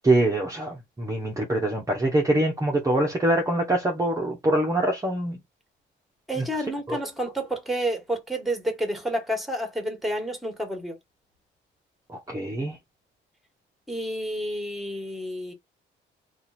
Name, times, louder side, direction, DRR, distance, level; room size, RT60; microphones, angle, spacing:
voice 1, 0.0-5.4 6.9-7.0 12.3-12.7, right 1 dB, 15° right, 0.9 m, -24 dB
voice 2, 6.3-11.0 13.9-15.5, right 1 dB, ahead, 1.6 m, -30 dB
2.8 x 2.5 x 4.2 m
cardioid pair, 90°, 20 cm